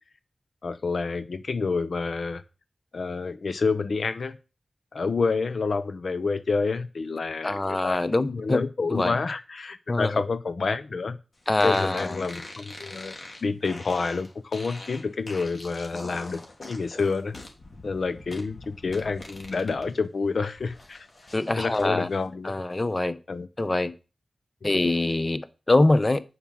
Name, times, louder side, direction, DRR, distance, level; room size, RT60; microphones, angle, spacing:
voice 1, 0.6-2.4 2.9-4.4 4.9-8.0 8.3-11.2 11.6-13.2 13.4-17.3 17.8-21.1 21.6-22.5 23.3-23.5, left 4 dB, 70° left, 0.7 m, -28 dB
voice 2, 7.4-8.6 8.9-9.2 9.9-10.1 11.5-12.3 21.3-22.1 22.4-23.2 23.6-23.9 24.6-26.2, left 2 dB, 30° left, 0.9 m, -24 dB
sound 1, 11.6-19.9 20.3-21.9, left 2 dB, 55° left, 2.9 m, -43 dB
8.8 x 7.2 x 6.2 m
wide cardioid pair, 70°, 0 cm